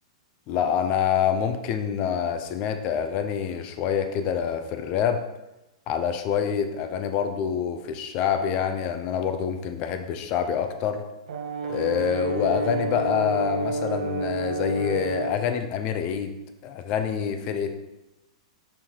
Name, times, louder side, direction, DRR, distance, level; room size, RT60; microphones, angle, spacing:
voice 1, 0.5-5.2 5.9-11.0 11.7-16.3 16.6-17.7, left 8 dB, 25° left, 8 dB, 0.4 m, -26 dB
Brass instrument, 11.3-15.4, right 3 dB, 85° right, 0.6 m, -30 dB
6.3 x 4.4 x 3.8 m, 0.96 s
supercardioid pair, 180°, 4 cm